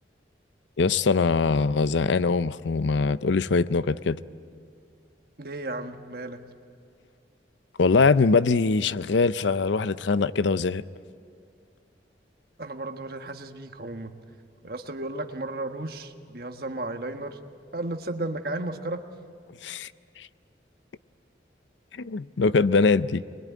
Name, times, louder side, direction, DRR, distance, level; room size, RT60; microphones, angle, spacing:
voice 1, 0.8-4.2 7.8-10.8 19.6-19.9 20.2-20.3 22.0-23.2, left 4 dB, 80° left, 16 dB, 0.5 m, -22 dB
voice 2, 5.4-6.4 12.6-14.1 14.6-17.4 17.7-19.0, right 2 dB, 55° right, 6 dB, 1.3 m, -34 dB
24.5 x 21.0 x 9.4 m, 2.3 s
head